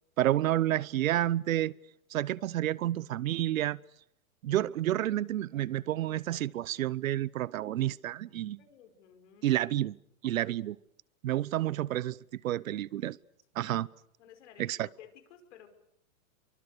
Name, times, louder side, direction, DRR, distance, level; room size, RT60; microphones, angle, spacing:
voice 1, 0.2-1.7 2.1-3.8 4.4-8.6 9.4-10.0 10.2-10.8 11.2-12.2 12.4-13.2 13.6-13.9 14.6-14.9, right 13 dB, 75° right, 1.0 m, -29 dB
voice 2, 8.6-9.5 14.2-15.7, left 9 dB, 60° left, 5.7 m, -55 dB
30.0 x 24.0 x 6.8 m
hypercardioid pair, 160°, 41 cm